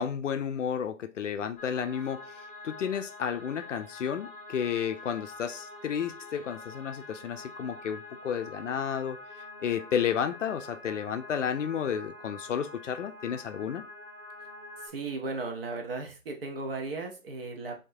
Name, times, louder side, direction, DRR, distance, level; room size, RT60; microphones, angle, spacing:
voice 1, 0.0-9.2 9.6-13.8, left 8 dB, 60° left, 0.5 m, -32 dB
sound 1, 1.6-14.9, left 2 dB, 5° left, 1.2 m, -46 dB
voice 2, 14.8-17.7, right 3 dB, 45° right, 0.9 m, -36 dB
4.4 x 2.7 x 2.7 m
hypercardioid pair, 150°, 41 cm